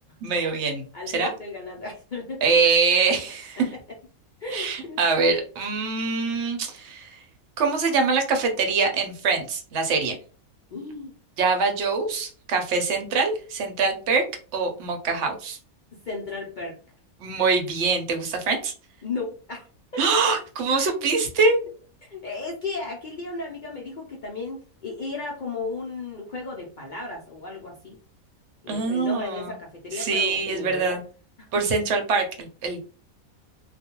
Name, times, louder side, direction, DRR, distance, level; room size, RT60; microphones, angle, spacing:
voice 1, 0.2-0.8 1.1-1.3 2.4-3.6 4.5-7.1 7.6-10.1 11.4-14.2 14.5-15.6 17.2-18.7 20.0-21.6 28.7-29.6 29.9-31.0 31.5-32.8, right 4 dB, 60° right, 4 dB, 0.8 m, -24 dB
voice 2, 0.9-2.4 4.4-5.0 10.7-11.1 16.1-16.8 19.0-19.7 19.9-20.0 22.0-28.0 28.6-31.0 31.5-31.7, left 3 dB, 65° left, -1 dB, 0.4 m, -34 dB
2.4 x 2.2 x 2.9 m, 0.39 s
omnidirectional pair, 1.5 m